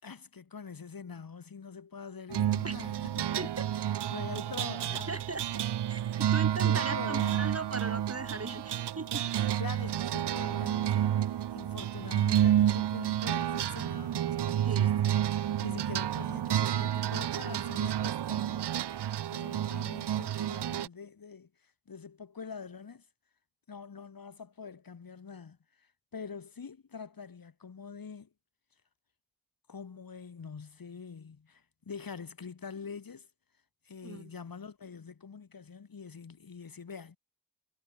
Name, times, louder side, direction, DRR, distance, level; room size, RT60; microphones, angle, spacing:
voice 1, 0.0-3.5 3.9-5.2 6.6-7.6 9.6-15.2 15.6-18.7 19.3-23.0 23.7-28.3 29.7-33.3 33.9-37.2, left 5 dB, 55° left, 5.7 m, -45 dB
sound 1, 2.3-20.9, right 11 dB, 75° right, 1.6 m, -30 dB
voice 2, 5.1-5.4 5.9-9.2 14.6-15.0 34.0-34.3, right 3 dB, 35° right, 7.2 m, -38 dB
supercardioid pair, 40°, 41 cm